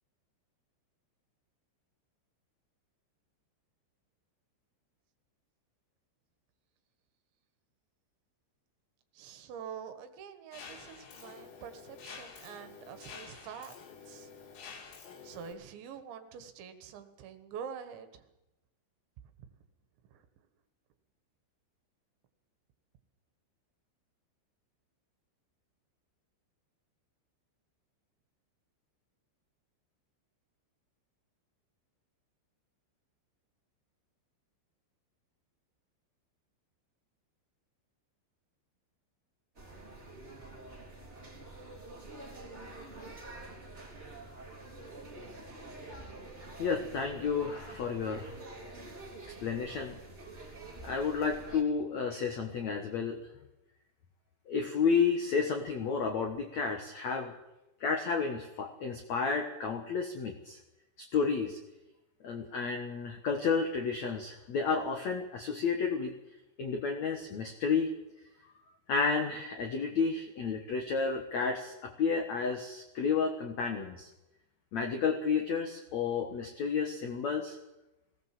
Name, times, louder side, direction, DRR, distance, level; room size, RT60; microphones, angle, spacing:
voice 1, 9.1-13.8 14.1-14.3 15.2-18.2 20.1-20.2, right 7 dB, 70° right, 9 dB, 3.7 m, -46 dB
Mechanisms, 10.5-15.5, left 5 dB, 65° left, 4.8 m, -49 dB
sound 1, 39.5-51.6, right 2 dB, 15° right, 3.3 m, -47 dB
voice 2, 46.6-48.3 49.4-50.0 50.8-53.2 54.5-57.3 57.8-60.6 61.0-61.6 62.2-66.1 66.6-67.9 68.9-74.1 74.7-77.6, left 5 dB, 80° left, 4 dB, 1.5 m, -31 dB
19.5 x 18.5 x 7.6 m, 0.95 s
omnidirectional pair, 5.6 m